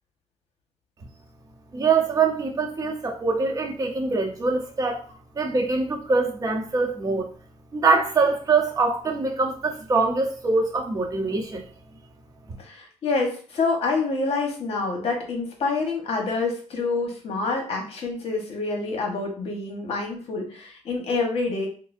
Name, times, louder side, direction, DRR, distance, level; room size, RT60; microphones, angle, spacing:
voice 1, 1.7-5.0 5.4-7.3 7.7-11.7, right 4 dB, 30° right, 2 dB, 0.8 m, -23 dB
voice 2, 12.6-21.7, left 3 dB, 55° left, 1 dB, 1.1 m, -27 dB
4.7 x 2.0 x 2.5 m, 0.42 s
cardioid pair, 115°, 12 cm